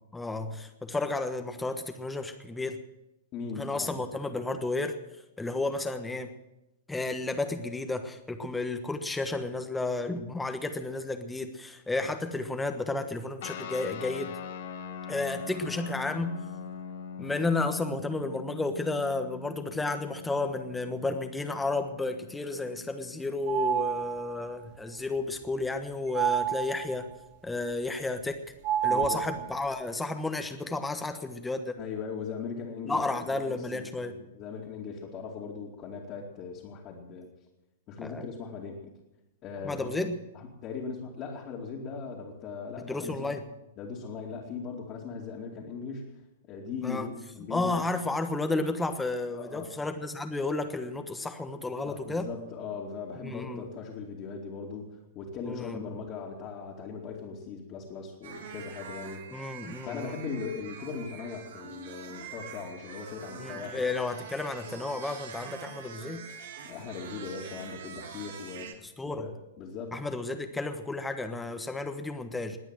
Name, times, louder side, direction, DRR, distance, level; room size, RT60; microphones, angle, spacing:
voice 1, 0.1-2.8 3.6-5.0 5.4-6.3 6.9-14.3 15.1-16.4 17.2-27.1 27.4-28.4 28.8-31.8 32.9-34.2 38.0-38.2 39.6-40.2 42.8-43.4 46.8-47.1 47.5-52.3 53.2-53.7 55.4-55.9 59.3-60.1 63.4-66.3 69.0-69.3 69.9-72.6, left 2 dB, 10° left, 7 dB, 1.2 m, -32 dB
voice 2, 3.3-4.0 28.9-29.2 31.8-37.3 37.9-38.8 39.4-40.0 40.3-43.4 43.8-46.1 46.5-47.8 49.3-49.7 51.8-54.9 55.1-59.2 59.9-63.9 66.6-69.3 69.6-70.0, left 5 dB, 35° left, -3 dB, 2.5 m, -39 dB
sound 1, 13.4-24.3, left 7 dB, 55° left, 1.6 m, -43 dB
sound 2, 23.5-24.4 26.1-27.1 28.6-29.8, right 9 dB, 40° right, 1.0 m, -29 dB
sound 3, 58.2-68.7, right 6 dB, 60° right, 1.9 m, -45 dB
20.5 x 8.9 x 7.6 m, 0.94 s
figure-of-eight pair, 105°, 0 cm